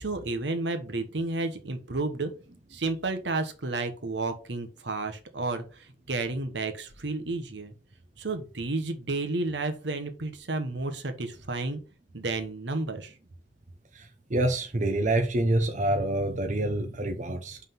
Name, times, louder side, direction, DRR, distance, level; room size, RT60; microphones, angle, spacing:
voice 1, 0.0-2.3 2.7-7.7 8.2-11.8 12.1-13.1, right 3 dB, 70° right, 7 dB, 1.2 m, -31 dB
voice 2, 13.9-17.6, right 1 dB, 45° right, 6 dB, 0.8 m, -27 dB
5.7 x 3.7 x 5.8 m, 0.35 s
head